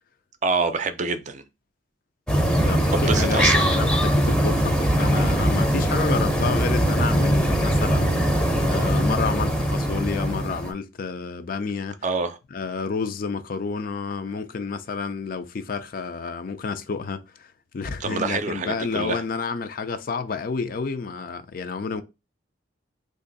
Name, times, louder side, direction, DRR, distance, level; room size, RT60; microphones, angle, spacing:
voice 1, 0.4-1.4 2.9-3.5 12.0-12.4 18.0-19.2, right 4 dB, 40° right, 0.5 m, -26 dB
sound 1, 2.3-10.7, equal, 5° left, 0.6 m, -21 dB
voice 2, 2.7-12.0 12.5-22.0, left 5 dB, 50° left, 0.4 m, -30 dB
3.1 x 2.6 x 3.8 m
head